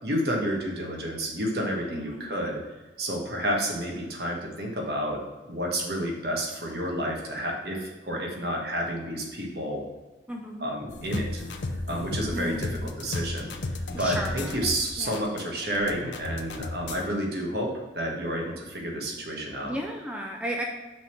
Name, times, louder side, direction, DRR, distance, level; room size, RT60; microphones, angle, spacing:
voice 1, 0.0-2.6 3.0-9.8 10.6-11.4 11.7-19.8, equal, 60° right, 0 dB, 1.4 m, -30 dB
voice 2, 1.9-2.3 10.3-10.7 12.3-12.8 13.9-14.6 15.0-15.4 19.6-20.6, equal, 5° right, 0 dB, 0.5 m, -34 dB
sound 1, 10.9-17.1, left 2 dB, 75° left, 0.6 m, -34 dB
5.9 x 3.6 x 6.0 m, 1.2 s
head